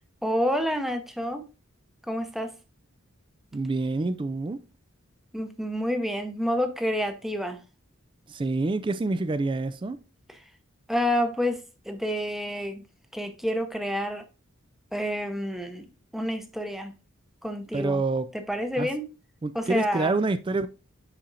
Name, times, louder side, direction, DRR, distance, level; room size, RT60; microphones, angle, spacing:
voice 1, 0.2-1.5 2.1-2.5 5.3-7.6 10.9-11.6 11.9-12.8 13.1-14.2 14.9-15.9 16.1-16.9 17.4-18.0 18.5-19.0 19.5-20.1, equal, ahead, 0.7 m, -28 dB
voice 2, 3.5-4.6 8.3-10.0 17.7-18.3 18.8-18.9 19.4-20.7, right 3 dB, 25° right, 0.3 m, -27 dB
10.0 x 4.2 x 2.5 m
head